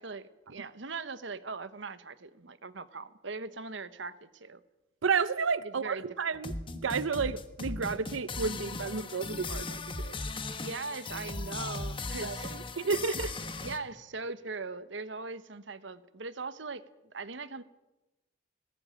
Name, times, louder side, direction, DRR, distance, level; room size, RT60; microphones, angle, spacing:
voice 1, 0.0-4.6 5.6-6.0 10.6-12.6 13.1-13.2 13.6-17.6, right 4 dB, 70° right, 14 dB, 1.1 m, -40 dB
voice 2, 5.0-10.2 12.2-13.3, right 5 dB, 85° right, 16 dB, 0.7 m, -32 dB
sound 1, 6.3-13.8, left 3 dB, 25° left, 1.4 m, -38 dB
20.5 x 16.5 x 8.9 m, 1.0 s
head